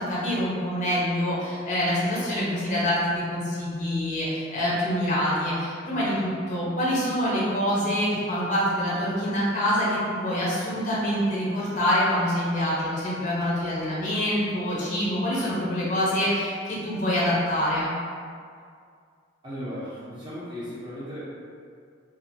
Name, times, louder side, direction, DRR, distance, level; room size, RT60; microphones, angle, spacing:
voice 1, 0.0-17.9, equal, 40° left, -8 dB, 0.7 m, -26 dB
voice 2, 19.4-21.2, equal, 25° right, -10 dB, 1.0 m, -36 dB
2.8 x 2.5 x 2.7 m, 2.2 s
head